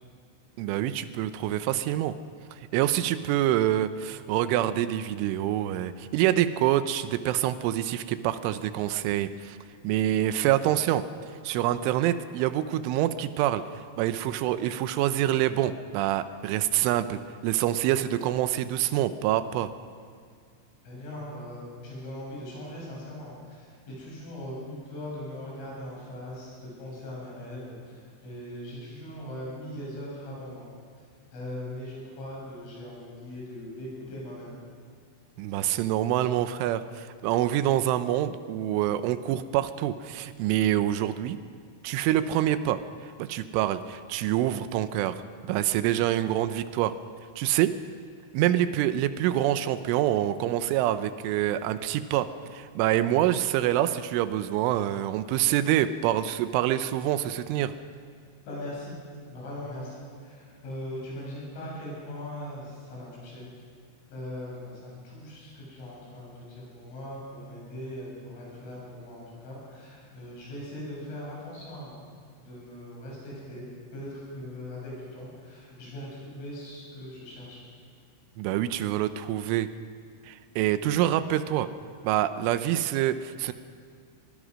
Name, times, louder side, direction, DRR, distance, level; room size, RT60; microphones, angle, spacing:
voice 1, 0.6-2.1 2.5-9.6 9.8-11.0 11.4-13.6 14.0-19.7 35.4-41.4 41.8-42.8 43.2-46.9 47.4-47.8 48.3-57.7 78.4-79.7 80.2-81.7 82.0-83.5, right 12 dB, 85° right, 12 dB, 3.2 m, -26 dB
voice 2, 20.8-30.7 31.3-34.5 58.5-59.0 59.3-63.5 64.1-72.0 72.4-73.6 73.9-77.6, left 1 dB, 75° left, -4 dB, 10.0 m, -40 dB
24.0 x 20.5 x 6.3 m, 2.1 s
omnidirectional pair, 5.7 m